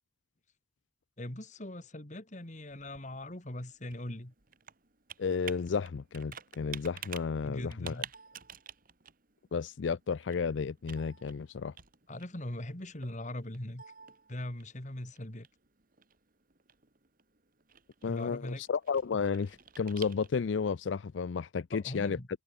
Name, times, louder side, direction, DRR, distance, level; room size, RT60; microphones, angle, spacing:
voice 1, 1.2-4.3 7.4-8.1 12.1-13.8 14.3-15.5 18.0-18.6 21.7-22.3, left 1 dB, 40° left, 2.6 m, -40 dB
Computer keyboard, 2.3-20.6, right 8 dB, 50° right, 2.5 m, -51 dB
voice 2, 5.2-8.0 9.5-11.7 18.0-22.2, left 5 dB, 85° left, 0.5 m, -32 dB
head